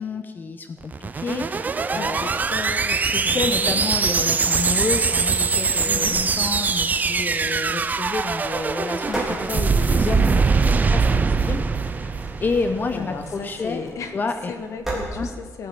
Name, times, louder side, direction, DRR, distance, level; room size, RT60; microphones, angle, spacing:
voice 1, 0.0-2.4 3.1-11.7 11.9-13.8 14.1-14.5 15.1-15.3, left 4 dB, 35° left, 8 dB, 0.7 m, -29 dB
sound 1, 0.8-13.2, right 5 dB, 30° right, 0.5 m, -22 dB
voice 2, 1.9-3.9 5.8-6.2 12.9-14.2 14.5-15.7, left 5 dB, 75° left, 7 dB, 1.4 m, -35 dB
sound 2, 3.4-15.0, right 1 dB, 5° right, 3.6 m, -39 dB
16.5 x 9.0 x 6.9 m, 1.5 s
wide cardioid pair, 160°, 5 cm